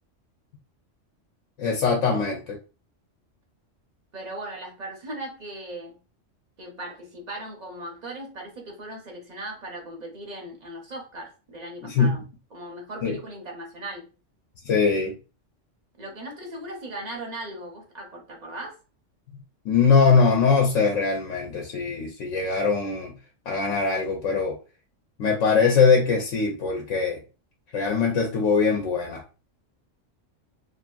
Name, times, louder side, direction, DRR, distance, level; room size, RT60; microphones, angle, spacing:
voice 1, 1.6-2.6 11.8-12.1 13.0-13.2 14.6-15.1 19.6-23.1 23.5-24.6 25.2-27.2 27.7-29.2, left 5 dB, 90° left, 1.0 m, -22 dB
voice 2, 4.1-5.9 6.6-12.2 12.5-14.1 16.0-18.8, right 1 dB, 45° right, 0.6 m, -38 dB
2.6 x 2.5 x 2.2 m
omnidirectional pair, 1.3 m